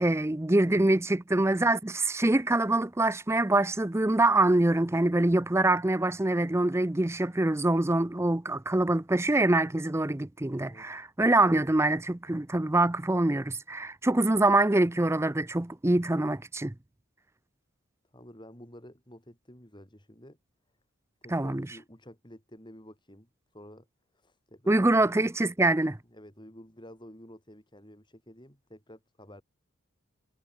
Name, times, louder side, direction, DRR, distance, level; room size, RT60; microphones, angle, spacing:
voice 1, 0.0-16.7 21.3-21.7 24.7-26.0, right 2 dB, 10° right, 0.5 m, -25 dB
voice 2, 10.6-11.0 18.1-20.4 21.2-23.3 23.5-23.9 24.1-25.3 26.1-29.4, equal, 20° left, 6.9 m, -50 dB
head